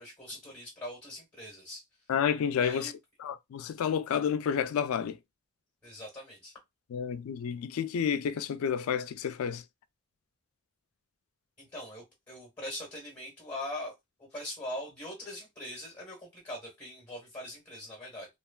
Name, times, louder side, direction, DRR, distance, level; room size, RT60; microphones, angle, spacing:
voice 1, 0.0-1.8 2.6-2.9 5.8-6.5 11.6-13.9 14.2-18.3, left 1 dB, 20° left, 1.3 m, -42 dB
voice 2, 2.1-2.9 3.2-5.2 6.9-9.6, left 7 dB, 85° left, 0.3 m, -30 dB
3.2 x 2.2 x 2.3 m
head